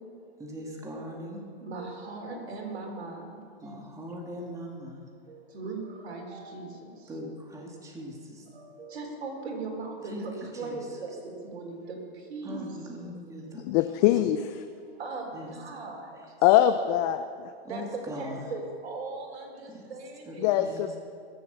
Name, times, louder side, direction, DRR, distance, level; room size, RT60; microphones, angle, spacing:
voice 1, 0.4-1.4 3.6-5.1 7.1-8.5 10.0-11.0 12.4-13.6 15.3-15.5 16.2-16.3 17.6-18.5 19.7-19.9 20.3-21.0, equal, 10° right, -1 dB, 2.2 m, -41 dB
voice 2, 1.6-3.8 5.3-6.7 8.5-11.1 11.4-12.0 12.3-12.6 15.0-16.2 17.7-20.5, right 3 dB, 75° right, 1 dB, 4.1 m, -38 dB
voice 3, 13.7-14.6 16.4-17.3 20.4-21.0, left 12 dB, 40° left, 9 dB, 0.6 m, -22 dB
21.5 x 7.7 x 6.9 m, 2.3 s
hypercardioid pair, 125°, 32 cm